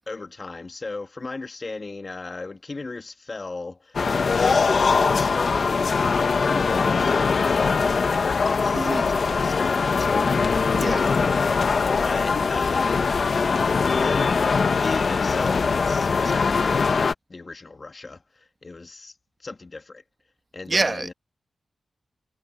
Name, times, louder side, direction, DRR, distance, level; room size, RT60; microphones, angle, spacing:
voice 1, 0.1-11.5 12.0-13.0 14.0-14.2 14.8-19.1 19.4-20.0 20.5-21.1, left 3 dB, 35° left, 1.7 m, -37 dB
sound 1, 3.9-17.1, left 5 dB, 60° left, 1.2 m, -21 dB
voice 2, 8.7-9.1 10.7-11.1 20.7-21.1, right 3 dB, 35° right, 1.5 m, -26 dB
wide cardioid pair, 100°, 0 cm